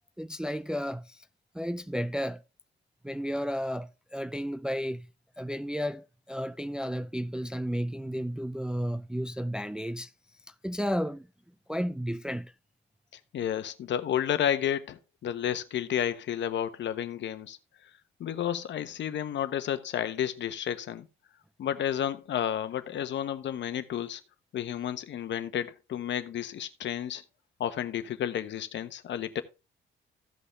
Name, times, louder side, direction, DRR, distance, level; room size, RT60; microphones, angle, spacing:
voice 1, 0.2-1.3 1.5-2.4 3.0-5.1 5.4-10.1 10.5-11.3 11.7-12.5, equal, 5° right, 0.4 m, -33 dB
voice 2, 13.1-17.9 18.2-21.1 21.6-24.2 24.5-27.2 27.6-29.4, left 10 dB, 65° left, 1.1 m, -31 dB
15.0 x 5.6 x 3.2 m
cardioid pair, 90°, 20 cm